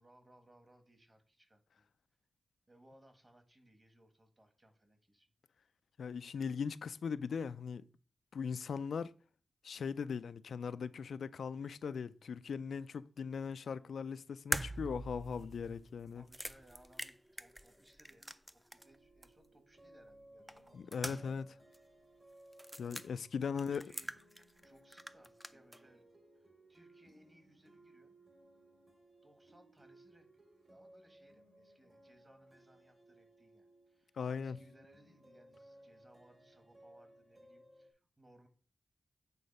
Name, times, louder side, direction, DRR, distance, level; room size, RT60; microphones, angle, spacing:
voice 1, 0.0-1.9 2.7-5.3 16.1-18.3 18.7-21.1 23.5-24.1 24.6-26.1 26.3-28.2 29.2-30.3 30.7-38.5, right 1 dB, 25° right, 1.5 m, -65 dB
voice 2, 6.0-7.8 8.3-9.1 9.6-16.2 20.7-21.6 22.8-23.8 34.2-34.6, left 6 dB, 80° left, 0.3 m, -39 dB
sound 1, 14.5-19.0 19.2-19.3 20.5-21.5 21.7-21.8 22.5-23.1 23.6-24.7 24.9-25.8, right 1 dB, 5° right, 0.4 m, -43 dB
sound 2, 18.8-37.9, right 1 dB, 40° right, 2.1 m, -62 dB
8.3 x 3.8 x 5.3 m
wide cardioid pair, 100°, 0 cm